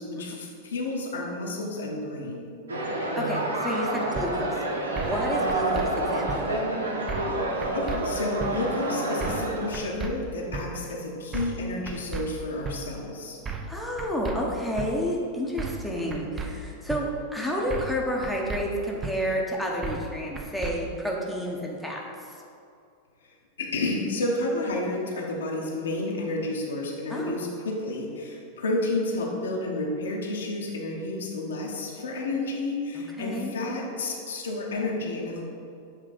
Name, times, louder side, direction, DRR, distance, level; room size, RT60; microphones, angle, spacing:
voice 1, 0.0-2.5 7.7-13.4 15.9-16.3 23.6-35.5, left 2 dB, 65° left, -1 dB, 1.0 m, -31 dB
sound 1, 2.7-9.7, right 1 dB, 75° right, 0.8 m, -28 dB
voice 2, 3.2-6.6 13.7-22.4 27.1-27.3 32.9-33.5, equal, ahead, -3 dB, 0.9 m, -30 dB
sound 2, 4.2-4.3 5.0-5.2 5.5-5.9 6.3-6.4 7.1-7.4 7.6-8.0 8.4-8.5 9.2-9.5 9.7-10.1 10.5-10.7 11.3-11.6 11.9-12.2 12.6-12.8 13.5-13.7 14.0-14.4 14.8-14.9 15.6-15.9 16.1-16.5 16.9-17.0 17.7-18.0 18.2-18.6 19.0-19.1 19.8-20.1 20.4-20.7, right 5 dB, 20° right, 0.6 m, -34 dB
7.5 x 3.2 x 5.0 m, 2.5 s
figure-of-eight pair, 90°, 0 cm